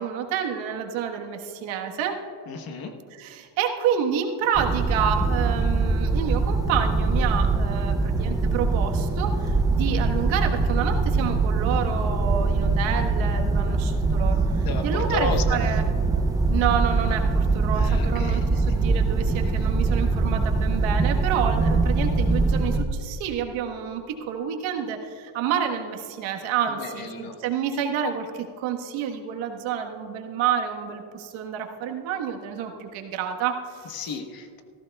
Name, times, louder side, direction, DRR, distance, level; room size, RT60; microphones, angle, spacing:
voice 1, 0.0-2.2 3.1-15.8 16.5-34.2, right 8 dB, 70° right, 3 dB, 1.5 m, -29 dB
voice 2, 2.5-3.0 14.6-15.6 17.7-18.4 18.7-18.8 19.6-19.7 26.8-27.4 33.9-34.6, left 4 dB, 45° left, 6 dB, 1.2 m, -33 dB
sound 1, 4.5-22.8, right 3 dB, 10° right, 0.4 m, -23 dB
18.0 x 15.0 x 2.3 m, 2.4 s
cardioid pair, 130°, 49 cm